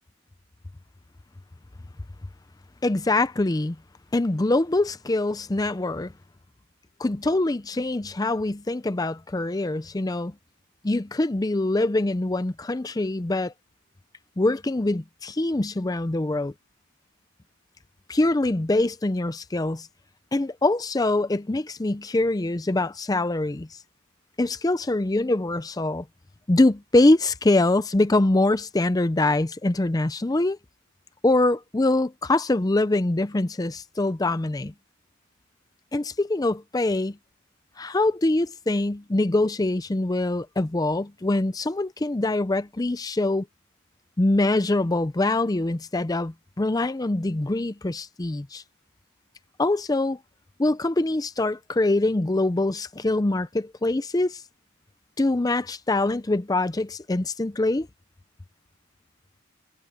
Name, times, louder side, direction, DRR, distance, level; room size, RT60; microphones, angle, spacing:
voice 1, 2.8-3.8 4.1-6.1 7.0-10.3 10.8-13.5 14.4-16.5 18.1-19.9 20.3-23.7 24.4-26.0 26.5-30.6 31.2-34.7 35.9-37.2 37.8-43.5 44.2-48.6 49.6-50.2 50.6-54.4 55.2-57.9, left 2 dB, 15° left, 0.5 m, -24 dB
head